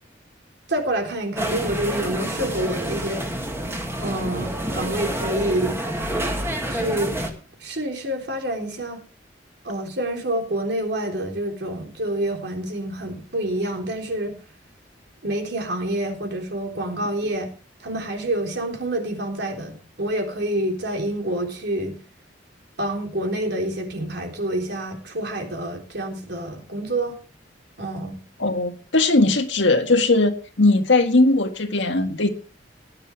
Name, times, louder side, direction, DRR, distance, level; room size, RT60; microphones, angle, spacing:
voice 1, 0.7-3.3 4.0-5.8 6.7-7.2 7.6-9.0 9.6-14.4 15.2-17.5 17.8-22.0 22.8-27.2 27.8-28.2, right 1 dB, 65° right, 3 dB, 3.7 m, -27 dB
sound 1, 1.4-7.3, right 1 dB, 15° right, 2.2 m, -28 dB
voice 2, 28.4-32.3, left 2 dB, 85° left, 6 dB, 1.9 m, -19 dB
17.5 x 11.0 x 3.5 m, 0.36 s
head